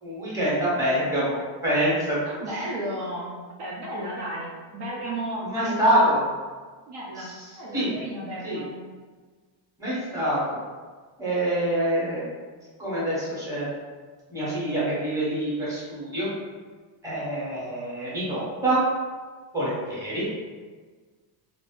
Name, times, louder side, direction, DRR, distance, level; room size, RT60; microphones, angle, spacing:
voice 1, 0.0-2.2 5.4-6.2 7.2-7.3 7.7-7.9 8.4-8.6 9.8-10.6 11.2-12.2 12.8-13.7 14.3-16.3 17.0-18.8 19.5-20.3, right 1 dB, 5° right, -8 dB, 0.8 m, -25 dB
voice 2, 2.3-3.3 3.6-6.0 6.9-8.8, right 1 dB, 60° right, -3 dB, 0.7 m, -34 dB
2.5 x 2.0 x 3.5 m, 1.4 s
cardioid pair, 150°, 48 cm